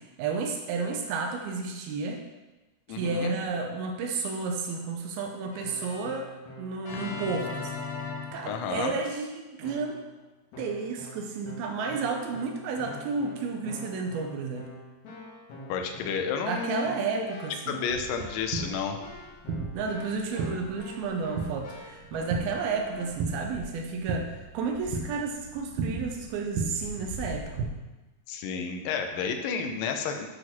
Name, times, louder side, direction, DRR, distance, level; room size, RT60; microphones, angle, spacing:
voice 1, 0.0-2.2 2.9-6.3 6.6-7.9 8.3-10.0 10.6-14.7 16.5-17.8 19.7-27.7, right 4 dB, 85° right, 3 dB, 2.6 m, -32 dB
voice 2, 2.9-3.4 8.5-8.9 15.7-17.2 17.7-19.0 28.3-30.3, left 6 dB, 75° left, 5 dB, 2.3 m, -31 dB
Keyboard (musical), 5.5-9.2 9.6-10.1 10.5-23.0, left 3 dB, 60° left, 2.4 m, -43 dB
sound 1, 17.9-27.7, right 4 dB, 70° right, 2.4 m, -36 dB
8.1 x 5.1 x 5.9 m, 1.2 s
omnidirectional pair, 4.3 m